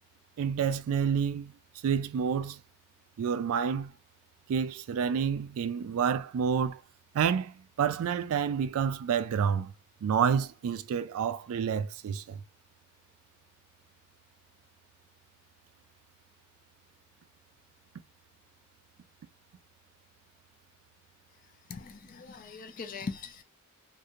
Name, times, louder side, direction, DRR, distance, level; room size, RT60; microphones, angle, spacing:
voice 1, 0.4-1.5 1.8-2.6 3.2-3.9 4.5-6.8 7.1-9.7 10.0-12.4, right 7 dB, 70° right, 0.3 m, -29 dB
voice 2, 21.7-23.4, left 4 dB, 40° left, 0.4 m, -40 dB
2.5 x 2.4 x 2.8 m
head